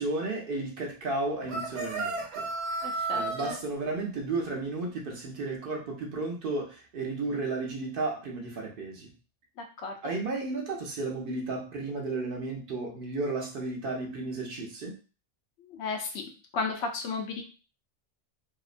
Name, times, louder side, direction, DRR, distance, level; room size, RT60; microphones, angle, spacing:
voice 1, 0.0-2.5 3.1-9.1 10.0-14.9, right 3 dB, 55° right, 1 dB, 0.8 m, -33 dB
sound 1, 1.5-3.6, right 3 dB, 90° right, 0.9 m, -32 dB
voice 2, 2.8-3.6 9.6-9.9 15.6-16.2 16.5-17.4, left 4 dB, 75° left, 3 dB, 0.8 m, -34 dB
2.7 x 2.0 x 2.4 m, 0.35 s
omnidirectional pair, 1.2 m